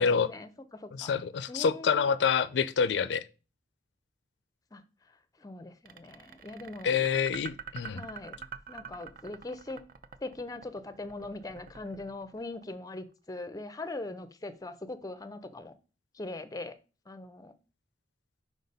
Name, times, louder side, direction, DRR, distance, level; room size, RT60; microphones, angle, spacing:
voice 1, 0.0-1.1 1.5-2.1 4.7-7.0 7.8-8.4 8.7-9.8 10.2-15.7 16.1-16.8 17.1-17.5, left 2 dB, 20° left, 0.5 m, -41 dB
voice 2, 1.0-3.2 6.8-8.0, left 6 dB, 80° left, 0.4 m, -27 dB
sound 1, 5.9-13.0, right 6 dB, 55° right, 0.5 m, -45 dB
4.9 x 4.0 x 5.3 m
head